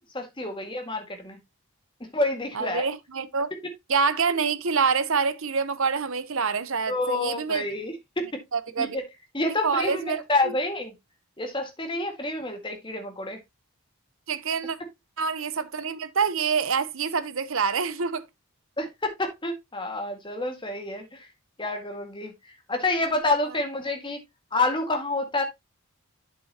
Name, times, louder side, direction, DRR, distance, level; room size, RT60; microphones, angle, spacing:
voice 1, 0.1-1.4 2.0-2.9 6.9-8.4 8.8-9.0 9.3-10.9 11.4-13.4 18.8-21.3 21.6-24.2 24.5-25.4, left 2 dB, 20° left, 1.8 m, -28 dB
voice 2, 2.5-3.5 3.9-7.7 8.5-9.0 9.6-10.5 11.8-12.0 14.3-14.8 15.2-18.2, right 5 dB, 60° right, 0.9 m, -26 dB
8.5 x 6.9 x 2.8 m
head